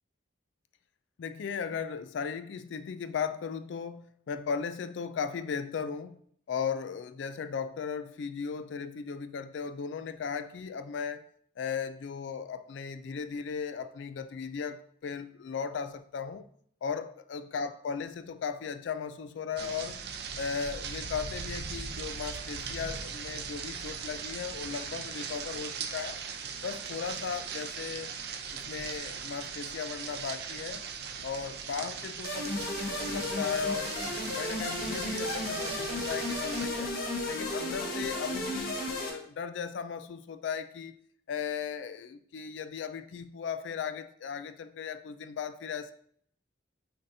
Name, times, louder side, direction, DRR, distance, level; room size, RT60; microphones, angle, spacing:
voice 1, 1.2-6.2 6.5-11.2 11.6-16.4 16.8-20.0 20.4-26.2 26.6-28.1 28.5-30.8 31.2-36.9 37.3-40.9 41.3-45.9, left 6 dB, 75° left, 11 dB, 0.3 m, -36 dB
sound 1, 19.6-36.7, right 6 dB, 60° right, 0.6 m, -39 dB
sound 2, 32.2-39.1, left 1 dB, 50° left, 1.2 m, -33 dB
8.6 x 4.1 x 2.7 m, 0.64 s
head